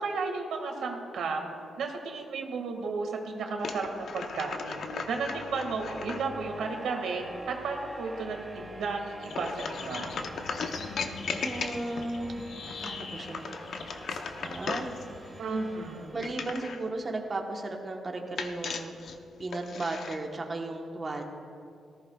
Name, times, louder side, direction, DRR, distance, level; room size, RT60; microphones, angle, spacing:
voice 1, 0.0-1.4 1.8-4.8 5.1-10.2 15.4-16.1, right 4 dB, 80° right, 2 dB, 1.8 m, -33 dB
sound 1, 3.6-6.2 9.3-12.1 12.7-15.0 16.2-16.9 18.4-20.2, left 5 dB, 55° left, 0.7 m, -37 dB
sound 2, 3.9-16.9, equal, 5° right, 2.9 m, -46 dB
sound 3, 9.2-16.1, left 4 dB, 70° left, 1.2 m, -44 dB
voice 2, 11.4-13.9 14.4-15.0 16.1-19.0 19.4-21.2, right 2 dB, 25° right, 2 dB, 1.1 m, -35 dB
18.5 x 14.0 x 2.3 m, 2.4 s
cardioid pair, 145°, 0 cm